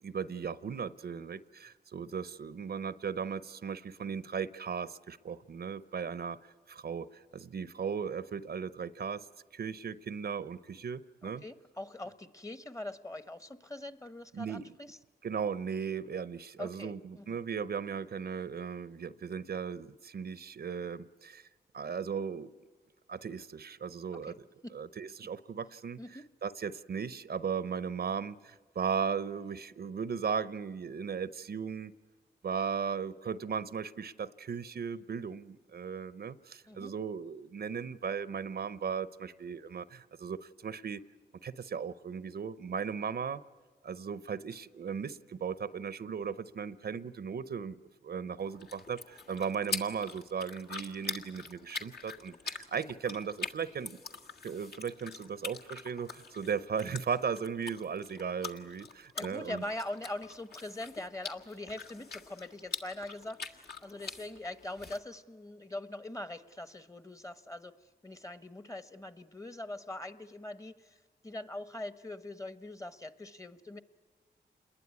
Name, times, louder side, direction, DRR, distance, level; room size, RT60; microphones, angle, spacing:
voice 1, 0.0-6.4 6.7-9.2 9.5-11.4 14.3-14.7 15.2-21.4 21.7-22.5 23.1-24.5 24.7-26.0 26.4-31.9 32.4-41.0 41.4-43.4 43.8-47.8 48.0-54.0 54.4-59.6, right 6 dB, 60° right, 16 dB, 0.7 m, -37 dB
voice 2, 11.4-15.0 16.6-17.4 24.2-24.3 24.6-24.8 26.0-26.3 36.7-36.9 59.1-67.7 68.0-71.0 71.2-73.8, left 1 dB, 15° left, 13 dB, 1.1 m, -42 dB
sound 1, 48.4-65.0, left 4 dB, 60° left, 1.8 m, -44 dB
27.5 x 21.0 x 9.6 m, 1.4 s
cardioid pair, 60°, 18 cm